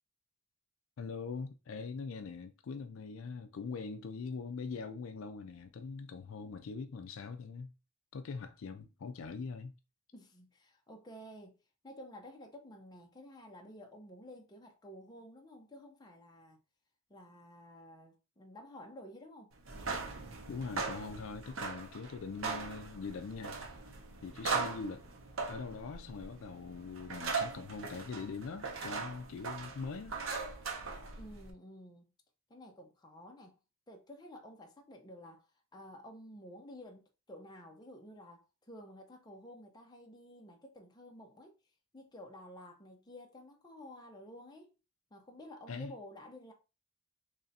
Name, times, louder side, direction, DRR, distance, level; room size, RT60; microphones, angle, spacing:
voice 1, 1.0-7.7 8.1-9.7 20.5-23.6 24.2-25.1 25.5-30.2 45.7-45.9, left 4 dB, 65° left, 0.4 m, -42 dB
voice 2, 10.1-11.6 11.8-16.6 17.1-19.5 31.2-32.1 32.5-33.5 33.9-35.5 35.7-41.6 41.9-44.7 45.1-46.5, equal, 20° left, 0.7 m, -52 dB
sound 1, 19.6-31.5, right 4 dB, 65° right, 0.8 m, -40 dB
3.3 x 2.6 x 4.0 m
head